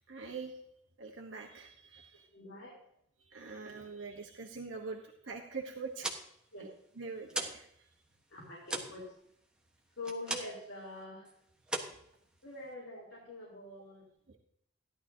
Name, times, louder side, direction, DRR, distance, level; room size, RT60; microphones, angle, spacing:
voice 1, 0.1-0.5 1.0-2.3 3.3-6.1 7.0-7.7 14.3-14.4, right 4 dB, 75° right, 1 dB, 1.2 m, -44 dB
voice 2, 2.3-2.8 6.5-6.7 8.3-9.1 10.0-11.3 12.4-14.0, left 2 dB, 70° left, -4 dB, 3.7 m, -45 dB
sound 1, 5.8-7.7 8.0-10.7 11.0-11.3 11.6-12.7, right 2 dB, 5° right, 1.3 m, -40 dB
15.5 x 11.5 x 2.8 m, 0.74 s
head